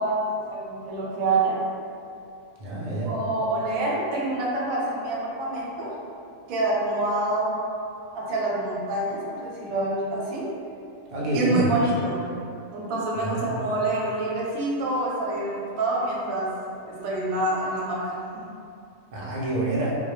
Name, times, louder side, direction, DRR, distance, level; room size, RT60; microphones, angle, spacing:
voice 1, 0.0-1.6 3.1-5.9 6.5-7.5 8.1-10.5 11.3-12.2 12.7-16.5 16.9-18.4, right 2 dB, 85° right, -5 dB, 1.0 m, -27 dB
voice 2, 2.6-3.1 11.1-11.7 13.2-13.7 19.1-19.9, right 2 dB, 70° right, -6 dB, 0.4 m, -27 dB
2.2 x 2.1 x 3.0 m, 2.5 s
omnidirectional pair, 1.4 m